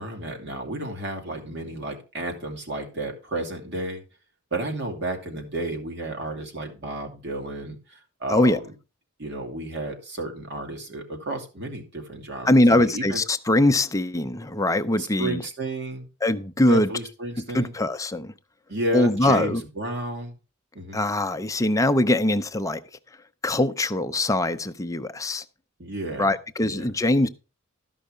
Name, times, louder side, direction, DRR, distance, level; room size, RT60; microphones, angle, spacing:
voice 1, 0.0-4.0 4.5-8.7 9.2-13.2 15.0-16.1 16.7-17.7 18.7-20.4 20.7-21.0 25.8-26.3 26.6-26.9, right 2 dB, 55° right, 2.4 m, -32 dB
voice 2, 12.5-15.4 16.2-16.9 17.5-18.3 18.9-19.6 20.9-22.8 23.4-25.4 26.2-27.3, left 1 dB, 15° left, 0.6 m, -22 dB
13.5 x 5.5 x 5.0 m
head